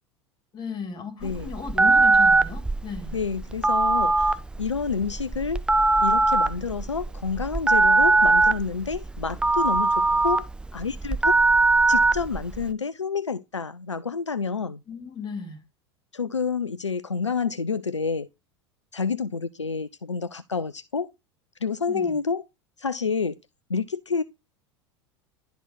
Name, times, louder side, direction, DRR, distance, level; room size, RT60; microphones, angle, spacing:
voice 1, 0.5-3.2 14.9-15.6 21.9-22.2, left 5 dB, 30° left, 2.8 m, -35 dB
Telephone, 1.2-12.7, right 3 dB, 5° right, 0.5 m, -21 dB
voice 2, 3.1-5.6 6.0-10.5 10.7-11.3 11.9-14.8 16.1-18.3 18.9-21.1 21.6-22.4 22.8-23.4 23.7-24.2, left 5 dB, 85° left, 0.4 m, -29 dB
11.5 x 4.4 x 4.0 m
figure-of-eight pair, 80°, 15 cm